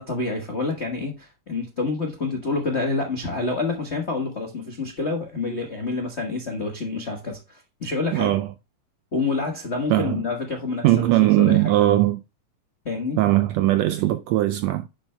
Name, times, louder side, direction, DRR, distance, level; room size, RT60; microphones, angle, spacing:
voice 1, 0.0-8.4 9.1-11.7 12.8-13.2, left 3 dB, 65° left, 0.6 m, -28 dB
voice 2, 8.1-8.5 9.9-10.2 10.8-12.2 13.2-14.9, right 15 dB, 85° right, 1.5 m, -19 dB
9.9 x 7.2 x 2.2 m
omnidirectional pair, 3.5 m